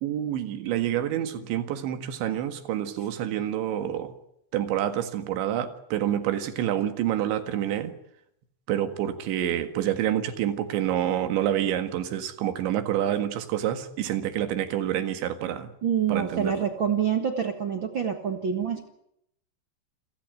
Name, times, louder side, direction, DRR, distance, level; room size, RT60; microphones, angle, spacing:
voice 1, 0.0-4.1 4.5-7.9 8.7-15.7 16.1-16.7, right 11 dB, 85° right, 9 dB, 4.1 m, -28 dB
voice 2, 15.8-18.9, right 7 dB, 65° right, 5 dB, 1.2 m, -26 dB
28.5 x 16.0 x 9.2 m, 0.77 s
omnidirectional pair, 5.2 m